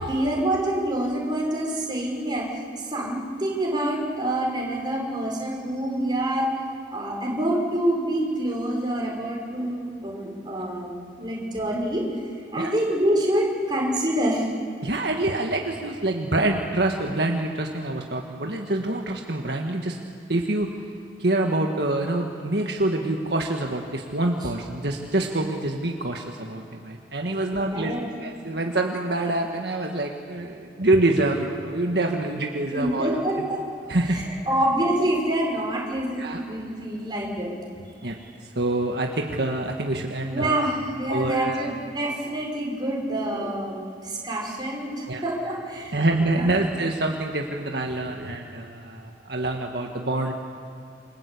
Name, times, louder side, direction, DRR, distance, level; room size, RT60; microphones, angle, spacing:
voice 1, 0.1-6.5 6.9-12.1 12.5-14.5 27.5-28.1 32.7-37.6 40.3-43.8 44.0-46.0 46.3-46.5, right 1 dB, 25° right, -3 dB, 5.8 m, -26 dB
voice 2, 14.8-20.0 20.3-20.7 21.2-27.9 28.2-33.2 33.9-34.2 36.2-36.4 38.0-40.7 41.1-41.7 43.4-43.5 45.1-45.2 45.9-50.3, right 2 dB, 60° right, 2 dB, 1.8 m, -26 dB
28.5 x 24.5 x 8.6 m, 2.4 s
head